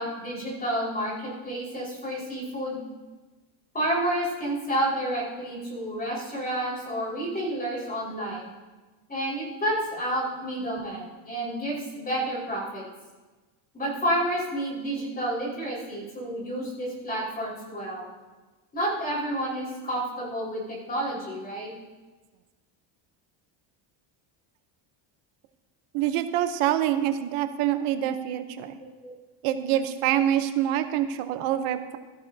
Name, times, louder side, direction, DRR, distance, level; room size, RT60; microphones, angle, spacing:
voice 1, 0.0-2.8 3.7-8.5 9.1-12.8 13.7-18.1 18.7-21.7 29.0-29.1, right 1 dB, 20° left, -5 dB, 4.7 m, -30 dB
voice 2, 25.9-28.8 29.4-32.0, right 11 dB, 80° right, 9 dB, 1.0 m, -26 dB
16.0 x 13.5 x 2.8 m, 1.2 s
cardioid pair, 160°, 49 cm